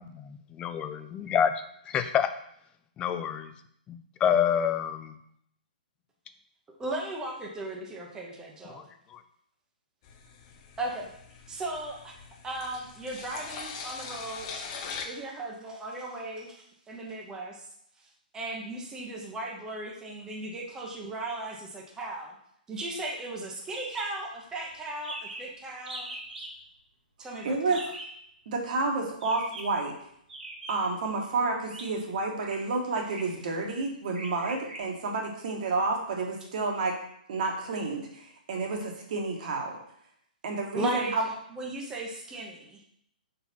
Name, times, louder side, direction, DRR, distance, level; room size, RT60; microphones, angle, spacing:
voice 1, 0.0-1.5 1.9-2.3 3.0-3.5 3.9-5.1 8.7-8.8 9.1-9.2, left 8 dB, 20° left, 10 dB, 0.4 m, -27 dB
voice 2, 6.8-8.8 10.8-11.1 11.5-12.1 12.4-14.6 15.0-17.7 18.3-22.3 22.7-26.1 27.2-27.9 40.7-41.2 41.5-42.8, right 2 dB, 10° right, -1 dB, 0.9 m, -36 dB
sound 1, 10.0-15.1, left 5 dB, 35° left, 0.8 m, -42 dB
sound 2, 23.7-24.1 24.4-24.5 24.7-24.8 25.0-25.5 25.9-26.5 27.7-28.2 29.2-29.8 30.3-31.0 31.6-31.9 32.4-32.6 33.0-33.4 34.1-34.8, right 1 dB, 90° right, 1.8 m, -41 dB
voice 3, 27.4-27.8 28.5-29.9 30.7-37.0 37.3-39.8 40.4-41.3, right 3 dB, 55° right, 1 dB, 1.5 m, -30 dB
5.6 x 4.1 x 4.4 m, 0.70 s
hypercardioid pair, 140°, 5 cm